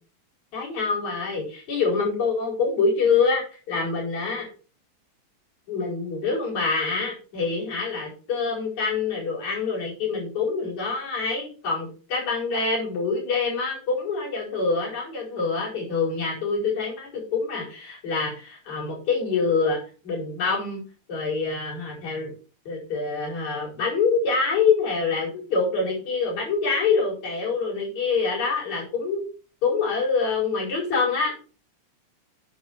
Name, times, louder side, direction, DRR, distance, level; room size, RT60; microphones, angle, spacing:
voice 1, 0.5-4.5 5.7-19.8 20.0-20.8 21.1-22.3 22.7-29.2 29.6-31.3, left 4 dB, 65° left, -3 dB, 6.6 m, -25 dB
10.5 x 8.6 x 4.5 m, 0.36 s
omnidirectional pair, 3.5 m